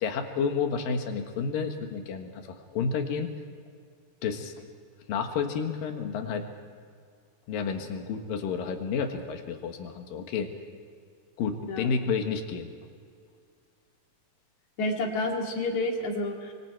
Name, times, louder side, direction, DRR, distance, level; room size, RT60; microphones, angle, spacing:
voice 1, 0.0-3.3 4.2-4.5 5.1-6.5 7.5-10.5 11.4-12.7, left 5 dB, 75° left, 5 dB, 3.2 m, -30 dB
voice 2, 14.8-16.5, left 2 dB, 55° left, 1 dB, 3.5 m, -29 dB
25.0 x 24.0 x 4.6 m, 2.2 s
omnidirectional pair, 4.1 m